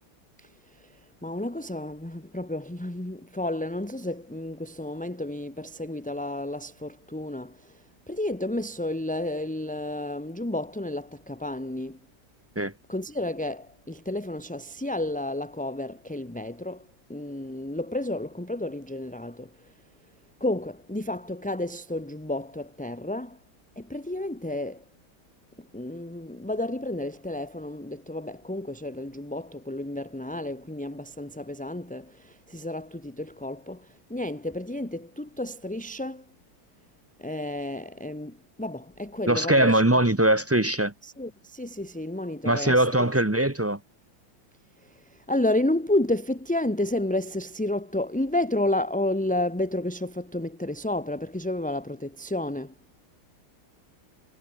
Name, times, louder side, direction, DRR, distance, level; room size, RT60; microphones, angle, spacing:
voice 1, 0.4-12.0 12.9-19.7 20.4-23.4 23.8-24.8 25.6-36.2 37.2-39.8 41.0-43.1 44.8-52.7, left 1 dB, 5° left, 1.1 m, -31 dB
voice 2, 39.3-40.9 42.4-43.8, right 1 dB, 20° right, 0.3 m, -21 dB
omnidirectional pair, 2.4 m